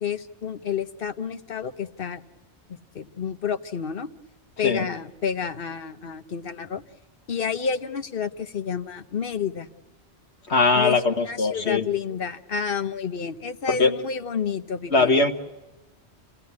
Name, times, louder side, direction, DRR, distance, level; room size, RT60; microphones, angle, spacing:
voice 1, 0.0-2.2 2.7-4.1 4.6-6.8 7.3-9.7 10.7-11.0 11.2-15.3, left 6 dB, 55° left, 9 dB, 1.1 m, -30 dB
voice 2, 10.5-11.8 13.7-13.9 14.9-15.3, left 3 dB, 75° left, 4 dB, 1.9 m, -20 dB
29.5 x 16.5 x 9.6 m, 1.1 s
omnidirectional pair, 1.1 m